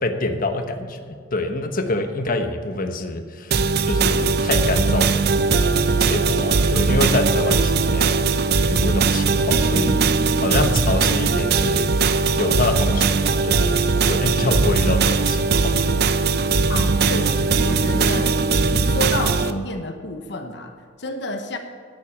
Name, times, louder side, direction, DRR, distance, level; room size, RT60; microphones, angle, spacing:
voice 1, 0.0-3.6 3.8-8.3 8.7-10.1 10.4-15.7, left 2 dB, 50° left, 7 dB, 1.1 m, -26 dB
sound 1, 3.5-19.5, right 4 dB, 60° right, 0.6 m, -19 dB
voice 2, 16.7-18.3 18.7-21.6, left 1 dB, 65° left, 5 dB, 1.1 m, -29 dB
11.5 x 8.0 x 7.3 m, 2.1 s
head